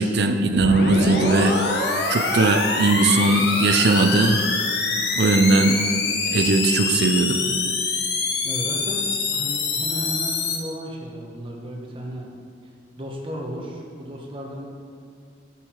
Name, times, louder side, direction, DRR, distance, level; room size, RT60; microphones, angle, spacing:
voice 1, 0.0-1.6 2.1-4.4 5.2-5.8 6.3-7.4, right 2 dB, 65° right, 6 dB, 0.6 m, -19 dB
sound 1, 0.6-10.6, left 3 dB, 70° left, 1.1 m, -25 dB
voice 2, 8.4-9.1 9.3-12.3 13.0-14.6, equal, 30° right, -1 dB, 1.2 m, -34 dB
8.2 x 7.3 x 4.6 m, 2.2 s
head